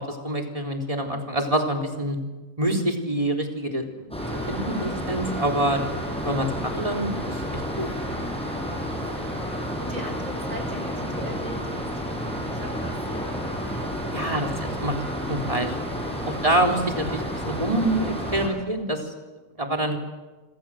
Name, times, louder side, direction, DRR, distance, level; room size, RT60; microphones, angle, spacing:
voice 1, 0.0-2.2 2.6-4.2 4.5-5.8 6.2-7.9 14.1-14.9 15.3-15.8 16.3-19.1 19.6-20.0, right 1 dB, 25° right, 2 dB, 4.0 m, -26 dB
sound 1, 4.1-18.5, equal, 5° left, 7.1 m, -31 dB
voice 2, 8.1-13.4 13.8-14.4 16.0-16.3 19.7-20.0, equal, 70° right, 4 dB, 7.0 m, -41 dB
28.0 x 26.0 x 7.8 m, 1.2 s
omnidirectional pair, 1.4 m